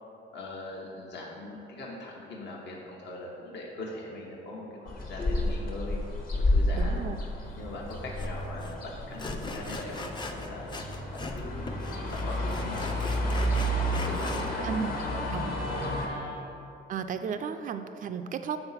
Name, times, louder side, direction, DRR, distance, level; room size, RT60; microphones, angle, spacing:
voice 1, 0.3-6.0 6.4-7.0 7.5-10.0 10.4-10.7 11.1-11.8 12.1-13.3 13.6-13.7 14.1-16.3, left 2 dB, 55° left, -3 dB, 1.0 m, -41 dB
sound 1, 4.9-16.1, left 1 dB, 40° left, 1.1 m, -31 dB
voice 2, 6.7-7.2 14.6-14.9 15.3-15.4 16.9-18.6, right 7 dB, 40° right, 8 dB, 0.4 m, -33 dB
Sawing, 8.2-8.3 8.6-8.7 9.2-11.4 11.7-14.5, left 2 dB, 20° left, 0.6 m, -39 dB
Guitar, 10.9-16.4, left 1 dB, 85° left, 1.0 m, -43 dB
6.9 x 3.9 x 5.7 m, 2.8 s
cardioid pair, 95°, 21 cm